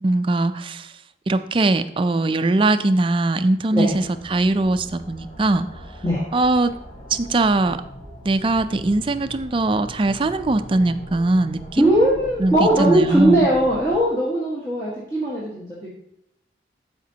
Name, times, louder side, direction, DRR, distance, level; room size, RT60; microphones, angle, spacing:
voice 1, 0.0-0.9 1.3-5.7 6.3-6.7 7.1-7.8 8.2-11.9 12.4-13.5, right 2 dB, 30° right, 10 dB, 0.4 m, -21 dB
sound 1, 3.9-14.0, equal, 35° left, 1.2 m, -40 dB
voice 2, 11.8-15.9, right 1 dB, 20° left, -7 dB, 1.5 m, -19 dB
13.5 x 5.0 x 2.8 m, 0.78 s
head